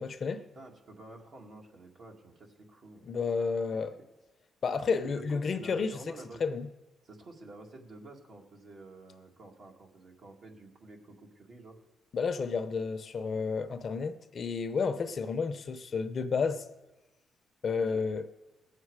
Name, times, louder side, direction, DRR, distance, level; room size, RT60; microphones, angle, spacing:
voice 1, 0.0-0.5 3.0-3.9 4.6-6.7 12.1-16.6 17.6-18.2, left 5 dB, 50° left, 0.7 m, -31 dB
voice 2, 0.6-3.1 5.0-6.4 7.0-11.8 17.8-18.0, right 2 dB, 60° right, 2.1 m, -50 dB
19.0 x 7.5 x 4.8 m
cardioid pair, 80°, 0 cm